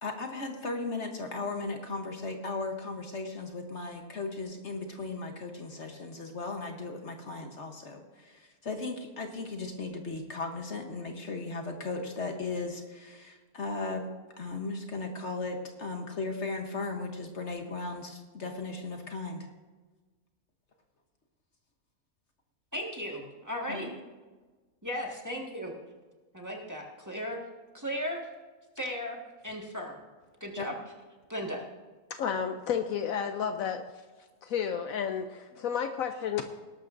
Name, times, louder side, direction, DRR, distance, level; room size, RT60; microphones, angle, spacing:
voice 1, 0.0-14.0 14.4-19.5 23.7-23.9 30.6-30.7, left 3 dB, 50° left, 4 dB, 1.3 m, -36 dB
voice 2, 22.7-23.9 24.8-25.7 26.3-27.4 27.7-28.3 28.7-29.2 29.4-30.0 30.4-30.7 31.3-31.6, equal, 10° right, -2 dB, 1.6 m, -36 dB
voice 3, 32.1-33.9 34.4-36.4, left 7 dB, 70° left, 7 dB, 1.0 m, -31 dB
18.5 x 12.0 x 2.6 m, 1.3 s
omnidirectional pair, 1.6 m